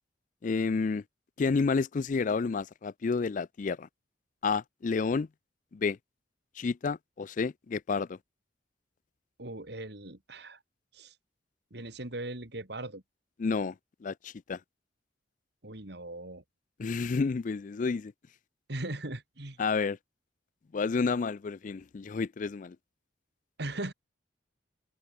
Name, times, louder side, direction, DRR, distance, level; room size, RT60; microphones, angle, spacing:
voice 1, 0.4-1.0 1.4-3.9 4.4-5.3 5.7-6.0 6.6-8.2 13.4-13.7 14.0-14.6 16.8-18.1 19.6-20.0 20.7-22.8, left 4 dB, 45° left, 0.4 m, -30 dB
voice 2, 9.4-10.6 10.9-11.1 11.7-13.0 15.6-16.4 18.7-19.6 23.6-23.9, right 1 dB, 60° right, 3.0 m, -39 dB
open air
head